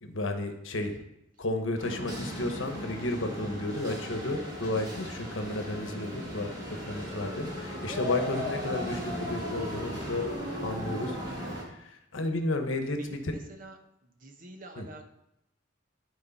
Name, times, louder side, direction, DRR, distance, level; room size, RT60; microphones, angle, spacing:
voice 1, 0.0-1.0 1.4-6.5 6.8-10.3 10.6-13.3 14.8-14.9, left 2 dB, 85° left, 6 dB, 1.0 m, -32 dB
sound 1, 1.8-11.6, equal, 20° right, 1.6 m, -36 dB
voice 2, 13.0-13.8 14.0-15.1, right 2 dB, 45° right, 4 dB, 0.9 m, -48 dB
11.5 x 4.7 x 4.1 m, 0.82 s
head